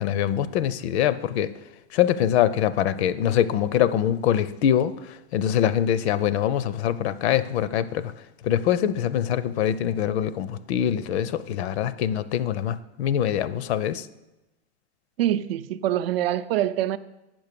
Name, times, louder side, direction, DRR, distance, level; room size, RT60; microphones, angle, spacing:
voice 1, 0.0-1.5 1.9-8.1 8.4-14.1, left 10 dB, 75° left, 0.6 m, -24 dB
voice 2, 15.2-17.0, right 12 dB, 65° right, 0.5 m, -24 dB
8.7 x 6.2 x 6.7 m
supercardioid pair, 175°, 33 cm